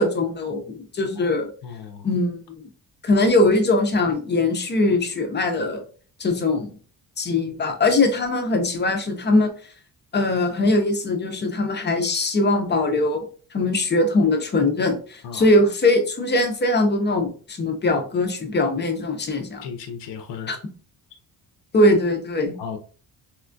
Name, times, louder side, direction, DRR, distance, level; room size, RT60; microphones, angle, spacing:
voice 1, 0.0-1.5 2.0-2.4 3.0-5.8 6.2-6.7 7.2-9.5 10.1-19.7 20.5-20.6 21.7-22.6, left 2 dB, 25° left, 4 dB, 0.4 m, -21 dB
voice 2, 1.6-2.1 15.2-15.5 19.6-20.5 22.6-22.8, left 7 dB, 80° left, 5 dB, 0.6 m, -35 dB
4.2 x 2.2 x 2.4 m, 0.41 s
wide cardioid pair, 175°, 43 cm